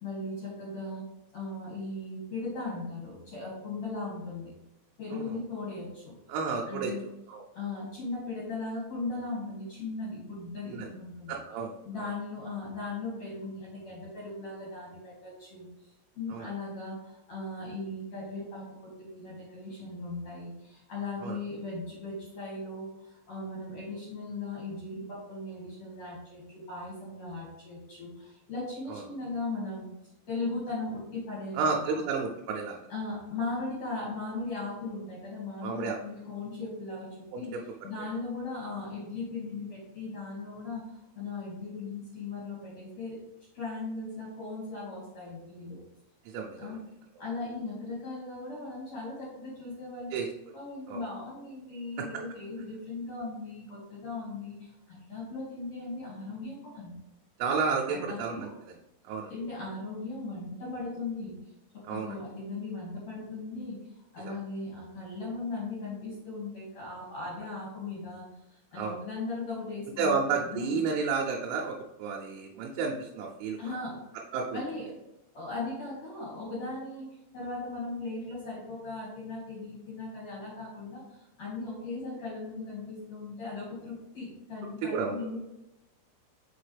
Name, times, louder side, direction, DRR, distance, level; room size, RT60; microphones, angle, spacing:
voice 1, 0.0-1.0 1.3-4.5 5.0-6.1 6.7-7.0 7.5-11.4 11.8-15.7 16.2-29.8 30.3-32.0 32.9-37.5 37.8-43.2 43.5-45.8 46.6-46.8 47.2-50.1 50.5-56.9 57.9-58.5 59.3-61.3 61.9-63.8 64.1-68.2 68.5-70.8 73.6-74.0 74.5-74.9 75.3-77.1 77.3-85.4, left 3 dB, 45° left, -7 dB, 2.4 m, -38 dB
voice 2, 6.3-6.9 7.3-7.4 10.6-10.9 11.3-11.7 16.3-16.5 21.2-21.4 28.9-29.0 31.5-32.8 35.6-36.0 37.3-37.6 38.0-38.1 46.2-46.8 50.1-50.3 50.9-51.0 57.4-58.8 59.0-59.3 61.8-62.2 64.2-64.3 68.7-69.0 70.0-73.7 74.3-74.6 84.9-85.2, right 5 dB, 80° right, -1 dB, 3.2 m, -31 dB
6.4 x 5.2 x 3.4 m, 0.89 s
omnidirectional pair, 5.8 m